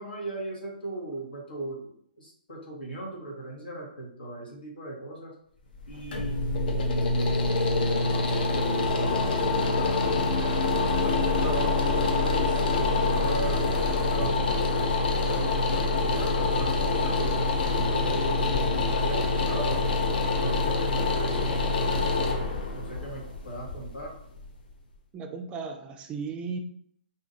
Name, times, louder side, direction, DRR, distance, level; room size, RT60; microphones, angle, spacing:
voice 1, 0.0-1.9 2.2-5.3 5.9-7.5 7.8-10.7 11.0-14.7 15.3-19.9 20.3-22.1 22.7-24.1, right 2 dB, 85° left, -2 dB, 1.3 m, -38 dB
sound 1, 5.7-24.7, left 3 dB, 70° left, 0.6 m, -26 dB
voice 2, 25.1-26.6, right 5 dB, 20° right, 5 dB, 0.3 m, -35 dB
2.7 x 2.5 x 3.7 m, 0.67 s
hypercardioid pair, 135°, 5 cm